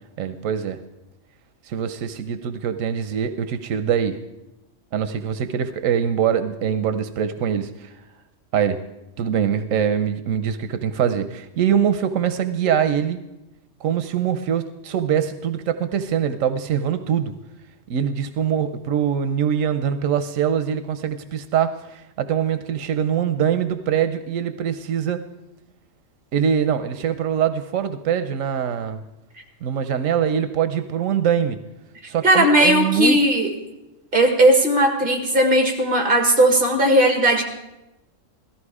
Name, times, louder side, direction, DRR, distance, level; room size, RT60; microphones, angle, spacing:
voice 1, 0.2-0.8 1.6-4.2 4.9-7.9 8.5-8.8 9.2-13.2 13.8-17.3 17.9-25.2 26.3-29.0 29.6-31.6 32.0-33.2, right 8 dB, 90° right, 10 dB, 1.1 m, -23 dB
voice 2, 32.2-33.5 34.1-37.4, right 1 dB, 45° right, 3 dB, 2.3 m, -17 dB
17.0 x 14.5 x 4.9 m, 0.95 s
omnidirectional pair, 1.3 m